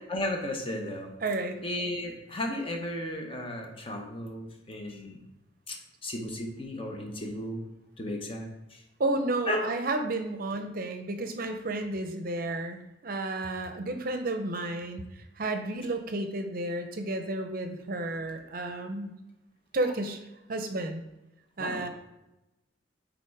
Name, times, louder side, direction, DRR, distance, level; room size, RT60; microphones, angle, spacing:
voice 1, 0.1-1.1 1.6-5.2 5.7-5.8 6.0-7.6 8.0-8.8 9.5-9.6 21.6-21.8, left 1 dB, 30° left, 2 dB, 1.0 m, -34 dB
voice 2, 1.2-1.6 9.0-15.1 15.4-19.1 19.7-20.2 20.5-21.0 21.6-21.9, right 2 dB, 50° right, 6 dB, 0.6 m, -32 dB
5.9 x 4.1 x 4.6 m, 0.94 s
head